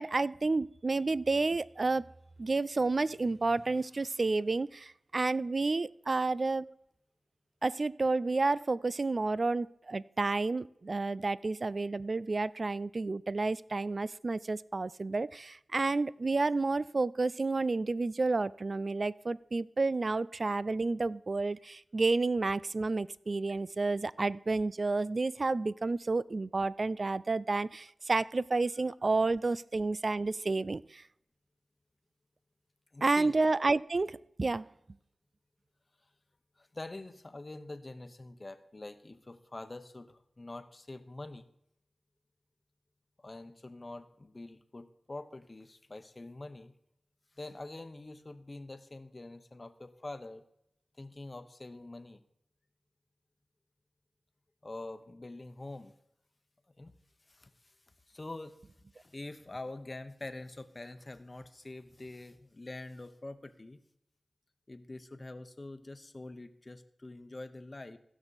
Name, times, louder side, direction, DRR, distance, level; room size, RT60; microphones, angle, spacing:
voice 1, 0.0-2.1 2.4-6.7 7.6-31.0 33.0-34.7, right 3 dB, 50° right, 20 dB, 0.3 m, -30 dB
voice 2, 32.9-33.3 36.6-41.5 43.2-46.7 47.3-50.4 51.0-52.2 54.6-55.9 56.8-56.9 57.3-57.7 58.1-58.6 58.9-63.8 64.7-68.0, left 2 dB, 40° left, 10 dB, 0.9 m, -45 dB
16.0 x 6.2 x 4.1 m, 0.78 s
cardioid pair, 50°, 0 cm